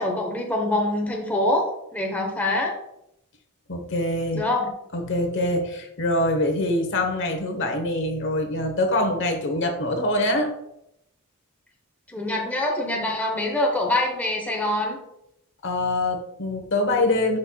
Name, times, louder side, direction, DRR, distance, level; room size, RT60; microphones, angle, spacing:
voice 1, 0.0-1.6 1.9-2.7 4.3-4.7 12.1-15.0, left 1 dB, 5° left, 0 dB, 0.9 m, -24 dB
voice 2, 3.7-4.5 4.9-10.5 15.6-17.4, left 1 dB, 60° left, 4 dB, 1.0 m, -24 dB
9.9 x 4.5 x 2.3 m, 0.82 s
head